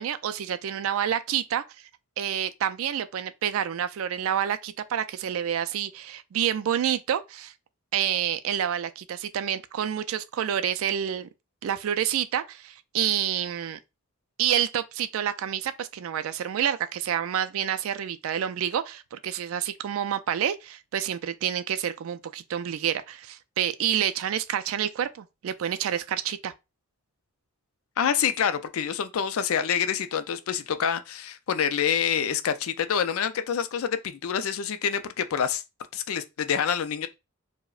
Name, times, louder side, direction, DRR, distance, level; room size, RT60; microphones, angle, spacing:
voice 1, 0.0-1.6 2.2-7.5 7.9-11.3 11.6-13.8 14.4-26.5, right 9 dB, 65° right, 0.3 m, -28 dB
voice 2, 28.0-35.6 35.9-37.1, left 7 dB, 75° left, 0.4 m, -27 dB
4.7 x 2.1 x 2.4 m
head